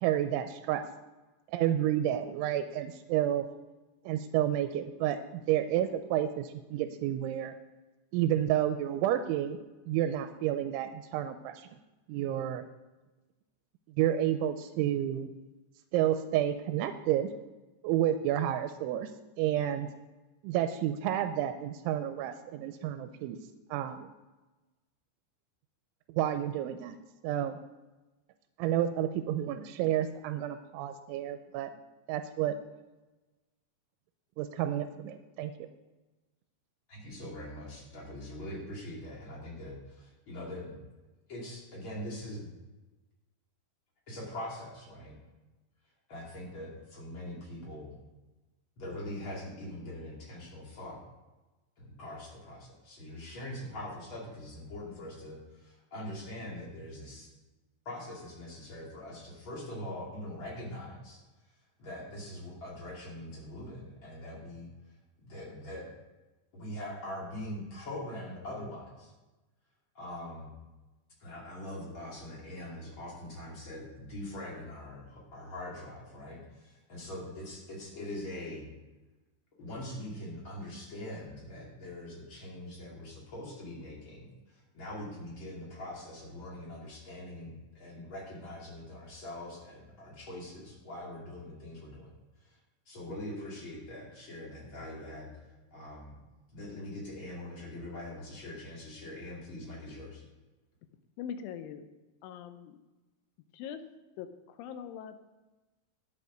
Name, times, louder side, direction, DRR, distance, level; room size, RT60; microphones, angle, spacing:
voice 1, 0.0-0.8 1.5-3.5 4.1-5.2 5.5-7.5 8.1-9.6 9.9-11.7 12.1-12.6 14.0-15.3 15.9-17.3 17.8-19.1 19.4-19.9 20.4-23.4 23.7-24.0 26.1-27.0 27.2-27.6 28.6-31.7 32.1-32.6 34.4-35.7, right 11 dB, 85° right, 9 dB, 2.9 m, -30 dB
voice 2, 36.9-40.8 41.3-42.5 44.1-45.2 46.1-48.0 48.8-51.0 51.8-57.3 57.8-61.2 61.8-64.7 65.2-65.9 66.5-69.1 69.9-70.5 71.2-78.7 79.6-92.1 92.4-92.6 92.9-95.3 95.7-96.2 96.5-100.2, left 1 dB, 35° left, -3 dB, 2.3 m, -42 dB
voice 3, 101.2-101.9 102.2-102.8 103.5-103.8 104.2-105.2, left 8 dB, 85° left, 9 dB, 3.3 m, -42 dB
11.0 x 8.3 x 5.1 m, 1.1 s
omnidirectional pair, 5.5 m